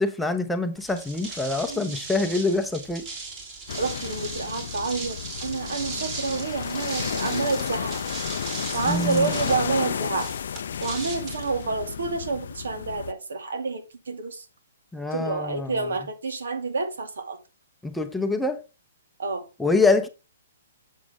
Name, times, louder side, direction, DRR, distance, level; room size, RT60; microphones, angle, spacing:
voice 1, 0.0-3.0 8.9-9.3 14.9-15.7 17.8-18.6 19.6-20.1, left 3 dB, 5° left, 0.7 m, -25 dB
sound 1, 0.8-12.2, right 3 dB, 25° right, 2.9 m, -38 dB
voice 2, 1.7-2.0 3.7-8.0 8.7-10.3 10.8-14.5 15.1-17.4 19.2-19.5, right 4 dB, 80° right, 2.1 m, -29 dB
sound 2, 3.7-13.1, left 8 dB, 65° left, 0.4 m, -32 dB
7.6 x 7.4 x 3.4 m
hypercardioid pair, 155°, 0 cm